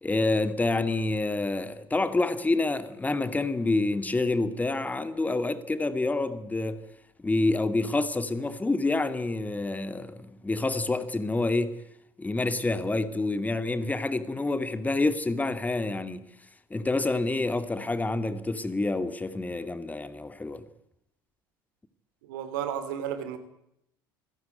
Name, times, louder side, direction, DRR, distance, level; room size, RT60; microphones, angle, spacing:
voice 1, 0.0-6.8 7.2-11.8 12.2-16.2 16.7-20.6, left 2 dB, 15° left, 2.5 m, -28 dB
voice 2, 22.2-23.4, right 9 dB, 65° right, 3.9 m, -33 dB
27.0 x 17.0 x 9.4 m
figure-of-eight pair, 65°, 11 cm